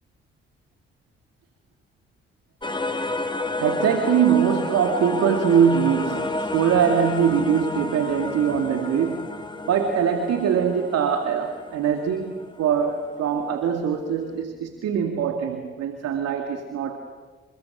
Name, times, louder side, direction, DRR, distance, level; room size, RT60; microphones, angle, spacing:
sound 1, 2.6-13.4, left 2 dB, 15° left, 2.6 m, -31 dB
voice 1, 3.6-9.3 9.7-17.0, right 7 dB, 60° right, 5 dB, 2.4 m, -22 dB
28.5 x 27.5 x 6.4 m, 1.4 s
figure-of-eight pair, 40°, 29 cm